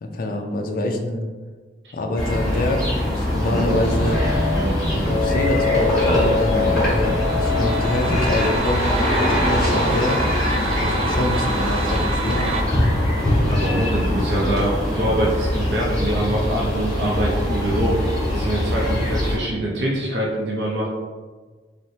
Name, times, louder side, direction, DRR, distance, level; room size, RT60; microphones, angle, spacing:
voice 1, 0.0-1.3 1.9-4.2 5.1-8.9 9.4-10.2 10.5-12.4, left 1 dB, 55° left, 2 dB, 0.4 m, -25 dB
sound 1, 2.2-19.4, left 1 dB, 5° left, 1.1 m, -22 dB
sound 2, 3.5-8.6, left 3 dB, 20° right, 0.9 m, -25 dB
sound 3, 7.0-12.6, right 3 dB, 35° right, 0.3 m, -30 dB
voice 2, 13.5-20.9, right 1 dB, 75° right, -4 dB, 0.6 m, -24 dB
4.1 x 2.1 x 2.7 m, 1.4 s
head